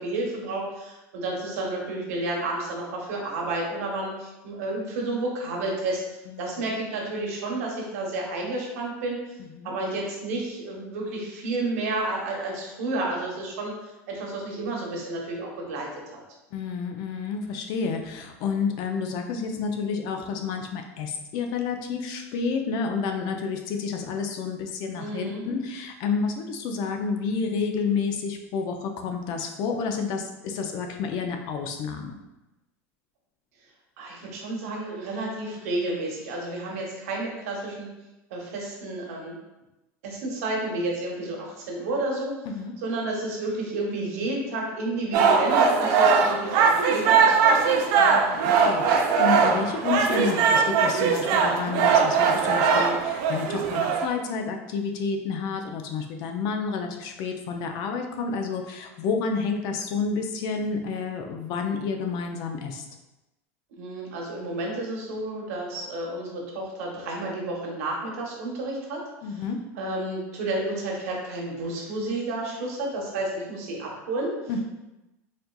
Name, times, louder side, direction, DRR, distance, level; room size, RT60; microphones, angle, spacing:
voice 1, 0.0-6.0 6.4-9.2 9.6-16.2 24.9-25.4 34.0-37.9 38.3-39.4 40.0-42.3 42.8-47.7 63.8-69.0 69.3-69.4 69.7-74.3, right 2 dB, 80° right, -2 dB, 1.0 m, -31 dB
voice 2, 6.3-6.6 9.4-9.7 16.5-32.2 42.4-42.7 48.0-62.8 69.2-69.6 74.5-74.6, left 5 dB, 55° left, 4 dB, 0.5 m, -30 dB
sound 1, 45.1-54.1, right 5 dB, 60° right, 0.5 m, -21 dB
4.2 x 2.5 x 2.3 m, 1.0 s
supercardioid pair, 115°, 8 cm